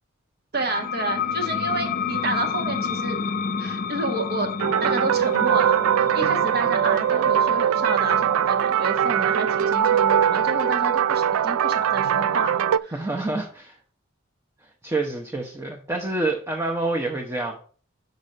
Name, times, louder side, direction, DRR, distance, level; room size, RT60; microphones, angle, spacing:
sound 1, 0.5-11.8, left 6 dB, 40° left, 0.5 m, -31 dB
voice 1, 0.5-3.3 3.6-4.5 4.8-13.0, right 3 dB, 50° right, 1.3 m, -29 dB
sound 2, 4.6-12.8, right 9 dB, 85° right, 0.3 m, -21 dB
voice 2, 12.9-13.8 14.8-17.6, right 2 dB, 15° right, 0.8 m, -27 dB
6.2 x 5.3 x 5.0 m
head